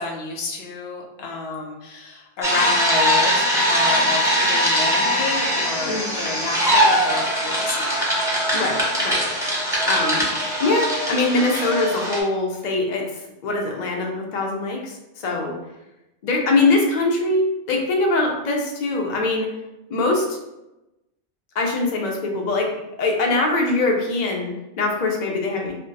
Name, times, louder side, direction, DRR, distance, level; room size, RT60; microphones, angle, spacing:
voice 1, 0.0-8.1, left 3 dB, 75° left, 0 dB, 0.9 m, -30 dB
sound 1, 2.4-12.2, equal, 5° right, 0.6 m, -21 dB
voice 2, 8.5-9.3 9.8-10.3 10.6-15.6 16.2-19.5 19.9-20.4 21.5-22.7 23.0-25.7, left 2 dB, 50° left, 1 dB, 0.6 m, -22 dB
2.3 x 2.2 x 3.8 m, 0.94 s
omnidirectional pair, 1.1 m